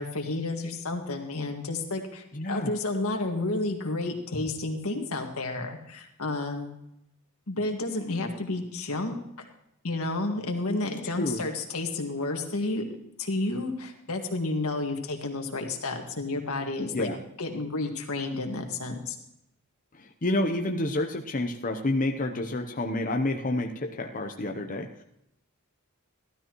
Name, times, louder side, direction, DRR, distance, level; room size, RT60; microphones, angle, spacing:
voice 1, 0.0-6.7 7.5-9.2 9.8-12.8 13.2-17.1 17.4-19.2, left 2 dB, 90° left, 3 dB, 1.8 m, -31 dB
voice 2, 2.3-2.7 11.1-11.4 16.9-17.2 20.2-24.9, left 1 dB, 40° left, 3 dB, 0.8 m, -29 dB
15.5 x 12.5 x 3.1 m, 0.80 s
head